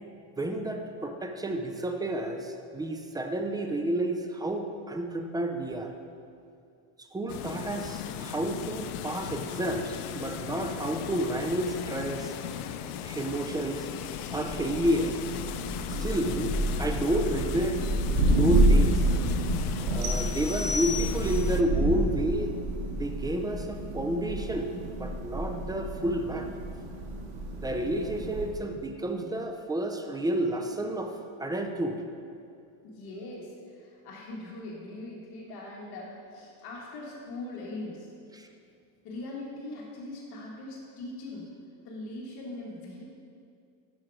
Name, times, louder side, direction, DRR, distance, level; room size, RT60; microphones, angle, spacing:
voice 1, 0.4-5.9 7.1-12.3 13.0-13.9 14.3-15.2 16.0-16.5 16.8-17.8 18.3-19.0 19.8-22.6 22.9-24.7 25.0-26.5 27.6-31.1 31.4-32.0 38.3-38.5, right 1 dB, 10° right, 4 dB, 0.4 m, -30 dB
sound 1, 7.3-21.6, left 9 dB, 85° left, 0.5 m, -38 dB
Thunder, 14.1-28.7, right 1 dB, 55° right, 1.4 m, -29 dB
sound 2, 20.0-21.6, left 4 dB, 80° right, 1.2 m, -34 dB
voice 2, 32.8-38.1 39.0-41.5 41.8-43.1, left 2 dB, 60° left, -4 dB, 1.6 m, -41 dB
6.2 x 6.0 x 4.9 m, 2.4 s
supercardioid pair, 105°, 44 cm